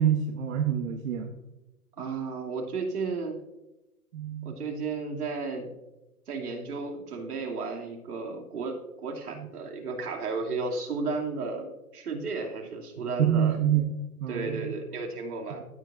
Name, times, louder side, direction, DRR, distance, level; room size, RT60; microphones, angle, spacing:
voice 1, 0.0-1.3 4.1-4.6 9.4-9.5 13.2-13.9 14.2-14.8 15.6-15.7, right 9 dB, 60° right, 4 dB, 1.2 m, -26 dB
voice 2, 2.0-3.4 4.4-5.7 6.3-13.6 14.3-15.6, right 4 dB, 80° right, 1 dB, 2.8 m, -33 dB
16.0 x 7.5 x 2.6 m, 1.0 s
hypercardioid pair, 140°, 44 cm